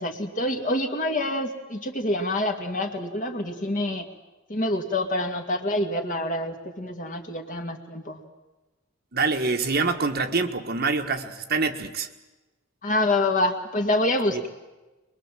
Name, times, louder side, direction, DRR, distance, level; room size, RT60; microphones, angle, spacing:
voice 1, 0.0-4.1 4.5-8.2 12.8-14.5, left 1 dB, 40° left, 4 dB, 2.1 m, -26 dB
voice 2, 9.1-12.1 14.3-14.4, right 4 dB, 50° right, 6 dB, 1.5 m, -25 dB
23.0 x 22.5 x 7.5 m, 1.1 s
head